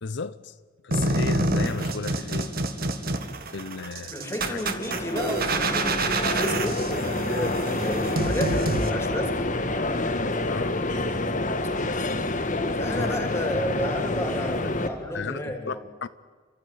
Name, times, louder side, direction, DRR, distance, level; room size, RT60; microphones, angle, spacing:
voice 1, 0.0-0.5 0.8-2.5 3.5-4.1 4.4-4.6 10.5-10.8 12.8-13.3 14.6-14.7 15.1-15.8 16.0-16.1, left 5 dB, 60° left, 0.6 m, -34 dB
sound 1, 0.9-8.9, right 2 dB, 50° right, 1.7 m, -27 dB
sound 2, 4.0-14.9, left 2 dB, 40° left, 1.5 m, -28 dB
voice 2, 4.1-9.4 12.7-15.8, left 1 dB, 15° left, 3.0 m, -32 dB
29.5 x 13.0 x 9.2 m
head